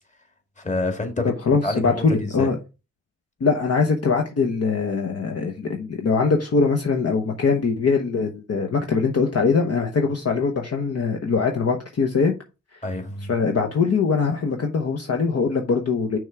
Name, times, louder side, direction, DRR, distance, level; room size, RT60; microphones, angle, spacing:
voice 1, 0.6-1.3 1.6-2.5 12.8-13.3, left 2 dB, 25° left, 2.2 m, -27 dB
voice 2, 1.5-2.6 3.4-12.3 13.3-16.2, left 4 dB, 55° left, 1.0 m, -22 dB
6.1 x 3.6 x 5.8 m
cardioid pair, 75°, 30 cm